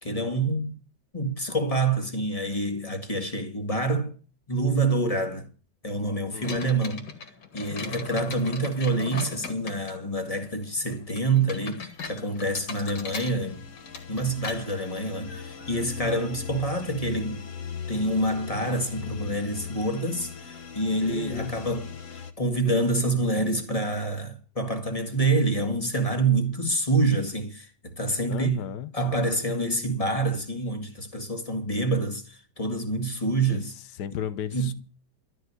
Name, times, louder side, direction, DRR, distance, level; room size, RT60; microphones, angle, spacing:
voice 1, 0.0-0.8 1.1-4.2 4.5-5.5 5.8-7.1 7.5-13.6 14.1-17.4 17.9-21.9 22.4-28.6 28.9-33.7 34.5-34.7, right 2 dB, 20° left, 2.0 m, -27 dB
sound 1, 6.4-17.4, left 5 dB, 85° left, 2.7 m, -40 dB
sound 2, 11.3-22.3, left 6 dB, 45° left, 1.6 m, -40 dB
voice 2, 21.1-21.5 28.3-28.9 33.5-33.6 33.9-34.7, left 9 dB, 70° left, 1.5 m, -34 dB
13.0 x 6.4 x 9.8 m
omnidirectional pair, 1.9 m